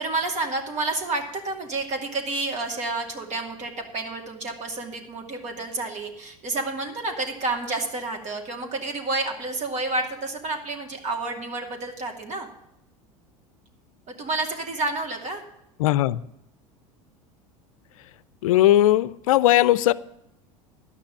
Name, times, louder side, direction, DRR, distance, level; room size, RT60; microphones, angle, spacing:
voice 1, 0.0-12.5 14.1-15.4, right 3 dB, 40° right, 2 dB, 2.5 m, -30 dB
voice 2, 15.8-16.2 18.4-19.9, left 14 dB, 80° left, 19 dB, 0.5 m, -18 dB
12.0 x 6.1 x 8.7 m, 0.83 s
hypercardioid pair, 80°, 17 cm